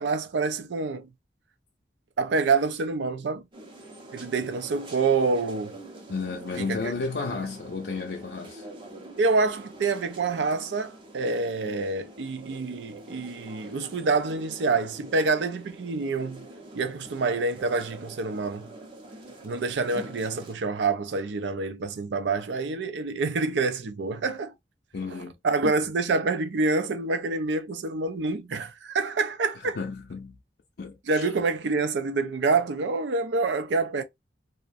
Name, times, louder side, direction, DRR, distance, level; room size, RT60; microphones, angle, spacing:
voice 1, 0.0-1.1 2.2-3.4 4.1-5.7 6.6-6.8 7.2-7.4 9.2-16.5 16.7-18.7 19.4-24.5 25.1-29.8 31.1-34.0, right 3 dB, 80° right, 0.4 m, -27 dB
sound 1, 3.5-20.5, right 1 dB, 30° right, 0.6 m, -45 dB
voice 2, 6.1-8.7 24.9-25.3 29.8-30.4 30.8-31.3, left 4 dB, 60° left, 0.4 m, -32 dB
2.4 x 2.1 x 2.4 m
head